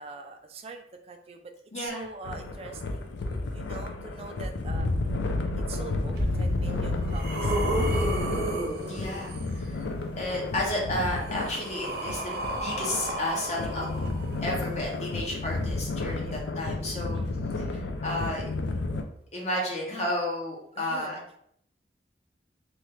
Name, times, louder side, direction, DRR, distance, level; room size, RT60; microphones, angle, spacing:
voice 1, 0.0-1.5 1.8-4.9 5.7-8.3 16.2-16.5 17.1-17.3 17.7-17.8 20.8-21.4, right 3 dB, 35° right, 5 dB, 0.3 m, -44 dB
voice 2, 1.7-2.1 8.8-9.8 10.2-17.2 17.6-18.4 19.3-21.2, left 1 dB, 40° left, -2 dB, 0.6 m, -32 dB
sound 1, 2.2-19.0, left 2 dB, 90° left, 0.4 m, -31 dB
sound 2, 6.1-6.2 6.8-9.6 10.8-14.7 15.6-15.7, right 1 dB, 55° right, 0.7 m, -32 dB
3.1 x 2.3 x 3.0 m, 0.68 s
head